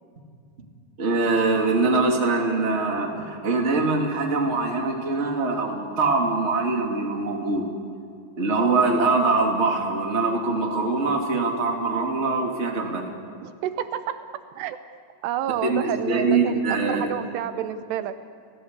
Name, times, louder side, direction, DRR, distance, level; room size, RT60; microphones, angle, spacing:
voice 1, 1.0-7.7 8.4-13.1 15.6-17.1, right 3 dB, 20° right, 1 dB, 2.2 m, -23 dB
voice 2, 13.4-14.2 14.6-14.8 15.2-18.2, right 10 dB, 80° right, 10 dB, 2.8 m, -29 dB
29.5 x 16.5 x 8.2 m, 2.4 s
omnidirectional pair, 4.9 m